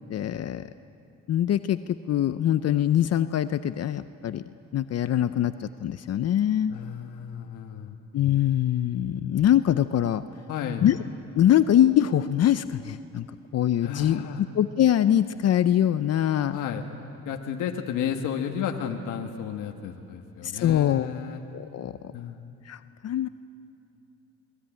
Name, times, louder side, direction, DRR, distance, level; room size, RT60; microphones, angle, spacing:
voice 1, 0.1-0.6 1.3-4.4 4.7-6.7 8.1-10.2 10.8-11.0 11.4-13.3 13.5-14.2 14.5-16.6 20.4-21.1 21.5-21.9 22.7-23.3, left 11 dB, 55° left, 12 dB, 0.6 m, -23 dB
voice 2, 6.7-8.0 10.5-10.8 13.8-14.4 16.5-16.9 17.2-21.4 22.1-22.4, left 8 dB, 90° left, 3 dB, 1.4 m, -32 dB
23.0 x 20.0 x 8.9 m, 2.7 s
cardioid pair, 90°, 30 cm